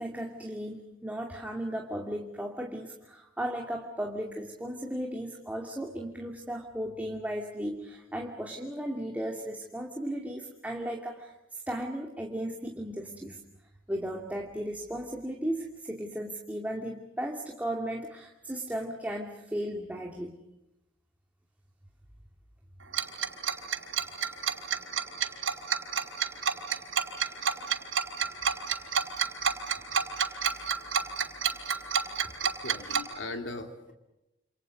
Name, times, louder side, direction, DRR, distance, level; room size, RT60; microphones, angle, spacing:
voice 1, 0.0-13.4 13.9-20.4, right 1 dB, 10° right, 1 dB, 2.5 m, -36 dB
Tick-tock, 22.9-33.0, right 7 dB, 85° right, 4.8 m, -28 dB
voice 2, 32.6-33.9, left 2 dB, 70° left, 6 dB, 3.2 m, -39 dB
29.0 x 28.5 x 5.3 m, 0.92 s
head